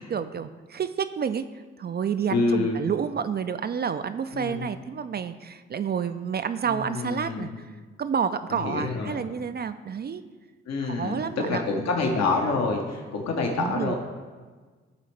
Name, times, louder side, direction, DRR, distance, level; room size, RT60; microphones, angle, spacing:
voice 1, 0.1-1.5 1.8-7.7 8.0-10.2 10.8-11.6 13.6-13.9, right 7 dB, 35° right, 11 dB, 0.4 m, -29 dB
voice 2, 2.3-2.8 4.3-4.7 6.7-7.5 8.5-9.2 10.7-14.0, left 3 dB, 60° left, 1 dB, 1.0 m, -27 dB
11.0 x 4.1 x 3.3 m, 1.4 s
hypercardioid pair, 45°, 29 cm